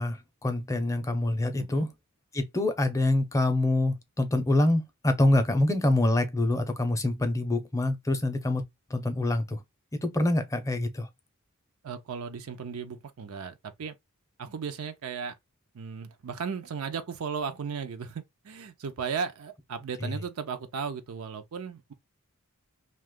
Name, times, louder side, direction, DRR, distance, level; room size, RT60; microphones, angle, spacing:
voice 1, 0.0-1.9 2.3-8.6 8.9-9.6 10.0-11.1 20.0-20.1, left 2 dB, 15° left, 0.5 m, -26 dB
voice 2, 11.8-13.9 14.4-15.3 15.7-21.9, right 6 dB, 75° right, 0.5 m, -36 dB
2.8 x 2.2 x 3.5 m
head